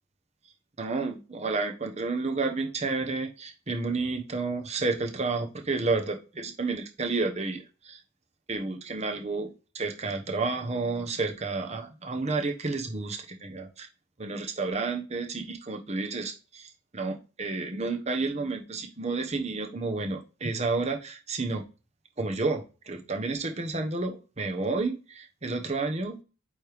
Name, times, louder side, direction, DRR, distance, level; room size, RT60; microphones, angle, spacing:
voice 1, 0.8-8.0 8.5-9.5 9.7-13.9 14.2-21.6 22.2-26.2, right 3 dB, 35° right, 4 dB, 1.0 m, -31 dB
8.4 x 3.2 x 3.4 m, 0.32 s
head